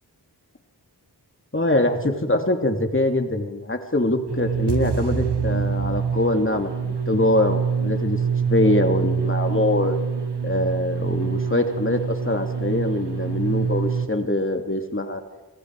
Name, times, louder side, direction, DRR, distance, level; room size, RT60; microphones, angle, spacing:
voice 1, 1.5-8.2 8.5-10.0 10.4-15.2, left 1 dB, 30° left, 5 dB, 3.0 m, -23 dB
sound 1, 4.3-14.1, right 6 dB, 80° right, 1.8 m, -25 dB
29.0 x 25.0 x 4.9 m, 1.1 s
cardioid pair, 50°, 40 cm